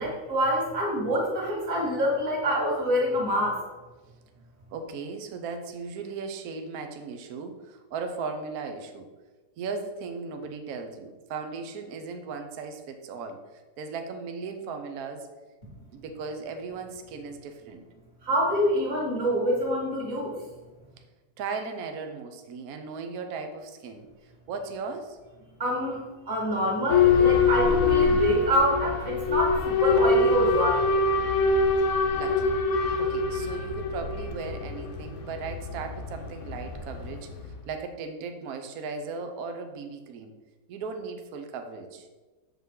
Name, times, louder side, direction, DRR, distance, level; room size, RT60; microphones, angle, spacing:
voice 1, 0.0-3.6 18.2-20.3 25.6-30.8, equal, 40° right, -5 dB, 2.1 m, -26 dB
voice 2, 4.7-9.1 9.6-15.3 15.8-17.8 21.4-25.2 32.1-32.5 33.0-40.3 40.7-42.1, right 4 dB, 65° right, 6 dB, 1.1 m, -37 dB
Boat Water vehicle / Alarm, 26.9-37.5, left 4 dB, 60° left, 1.2 m, -24 dB
7.5 x 5.5 x 3.7 m, 1.2 s
omnidirectional pair, 1.9 m